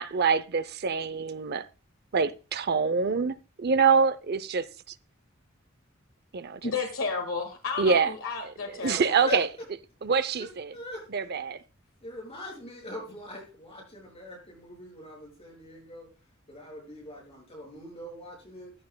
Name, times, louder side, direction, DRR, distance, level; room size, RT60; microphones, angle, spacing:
voice 1, 0.0-1.6 2.1-4.6 6.3-6.7 7.8-8.1 8.8-9.5 10.0-10.7 11.1-11.6, right 5 dB, 50° right, 0.5 m, -25 dB
voice 2, 6.6-9.2, left 4 dB, 80° left, 1.7 m, -32 dB
voice 3, 8.8-9.7 10.4-11.0 12.0-16.1 16.5-18.7, left 1 dB, 30° left, 6.2 m, -42 dB
15.0 x 9.0 x 2.2 m
head